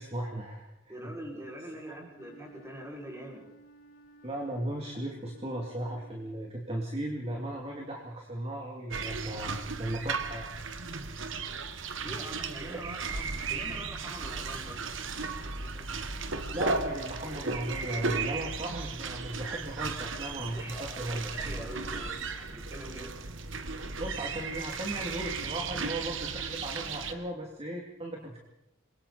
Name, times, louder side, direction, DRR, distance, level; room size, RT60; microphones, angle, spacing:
voice 1, 0.0-1.1 1.9-2.0 4.2-9.5 9.8-10.5 12.7-12.9 16.5-21.2 24.0-28.4, right 1 dB, 30° right, -1 dB, 2.9 m, -36 dB
voice 2, 0.9-3.4 12.0-14.9 15.2-16.1 20.1-23.2, right 1 dB, 15° right, -1 dB, 6.2 m, -44 dB
Wind instrument woodwind instrument, 2.1-6.6, right 2 dB, 45° left, 2.1 m, -56 dB
sound 1, 8.9-27.1, right 4 dB, 70° right, 1.6 m, -35 dB
28.5 x 23.0 x 4.3 m, 0.82 s
head